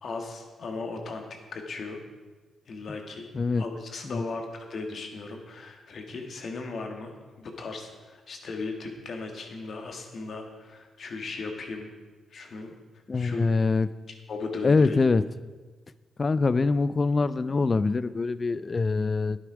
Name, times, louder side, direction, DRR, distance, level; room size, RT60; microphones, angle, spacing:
voice 1, 0.0-1.2 1.5-2.0 2.7-3.3 3.6-11.9 12.3-12.7 13.1-13.5 14.3-15.0, left 3 dB, 60° left, 3 dB, 1.7 m, -37 dB
voice 2, 13.1-13.9 14.6-15.2 16.2-19.4, left 3 dB, 40° left, 16 dB, 0.4 m, -24 dB
9.8 x 8.8 x 5.0 m, 1.3 s
supercardioid pair, 50°, 0 cm